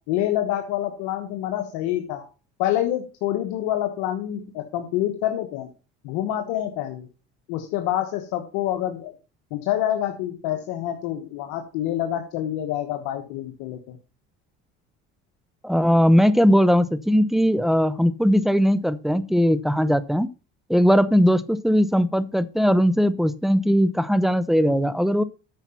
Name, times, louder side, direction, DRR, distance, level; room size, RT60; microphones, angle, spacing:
voice 1, 0.1-2.3 2.6-5.7 6.0-7.1 7.5-9.1 9.5-14.0, left 12 dB, 85° left, 5 dB, 1.3 m, -27 dB
voice 2, 15.6-20.3 20.7-25.2, equal, ahead, 15 dB, 0.8 m, -19 dB
9.3 x 5.7 x 5.7 m, 0.33 s
supercardioid pair, 95°, 29 cm